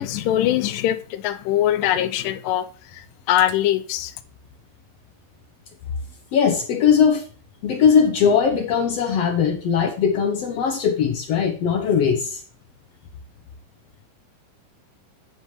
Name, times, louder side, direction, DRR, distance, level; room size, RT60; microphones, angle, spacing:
voice 1, 0.0-4.1, left 12 dB, 90° left, 12 dB, 2.4 m, -22 dB
voice 2, 6.3-7.3 7.6-12.4, left 7 dB, 70° left, 6 dB, 1.5 m, -19 dB
9.3 x 7.3 x 3.2 m, 0.41 s
omnidirectional pair, 3.8 m